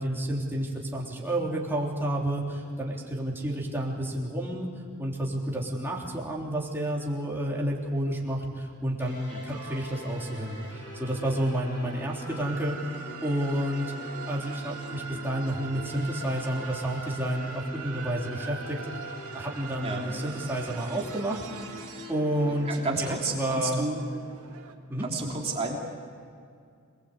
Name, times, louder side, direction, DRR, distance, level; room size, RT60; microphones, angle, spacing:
voice 1, 0.0-4.7 5.0-12.8 13.2-14.0 14.3-21.4 22.1-22.7 23.0-23.9 24.9-25.1, right 1 dB, 10° right, -3 dB, 3.6 m, -30 dB
sound 1, 9.0-22.7, left 2 dB, 50° left, 4.7 m, -44 dB
sound 2, 9.5-24.7, right 6 dB, 80° right, 2.4 m, -43 dB
voice 2, 22.4-24.0 25.0-25.8, right 3 dB, 25° right, -1 dB, 3.3 m, -31 dB
27.0 x 20.5 x 8.3 m, 2.2 s
head